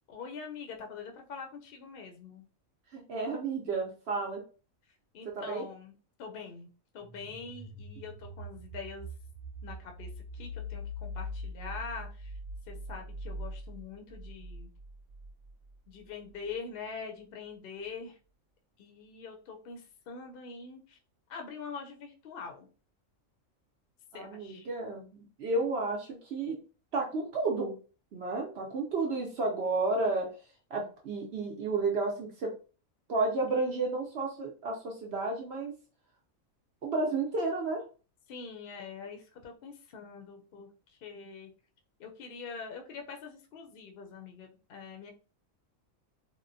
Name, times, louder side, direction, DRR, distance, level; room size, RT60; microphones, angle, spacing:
voice 1, 0.1-2.5 5.1-5.9 6.2-6.7 6.9-9.1 9.6-12.4 12.7-14.7 15.9-18.2 18.8-21.0 21.3-22.7 24.1-24.7 38.3-41.5 42.0-45.1, left 5 dB, 55° left, 3 dB, 0.7 m, -44 dB
voice 2, 2.9-4.4 5.3-5.7 24.1-26.6 26.9-27.7 28.1-30.3 30.7-32.5 33.1-35.7 36.8-37.8, right 3 dB, 60° right, 0 dB, 0.8 m, -32 dB
sound 1, 7.0-15.7, equal, 10° right, 0.8 m, -42 dB
3.6 x 2.1 x 2.5 m, 0.36 s
omnidirectional pair, 1.4 m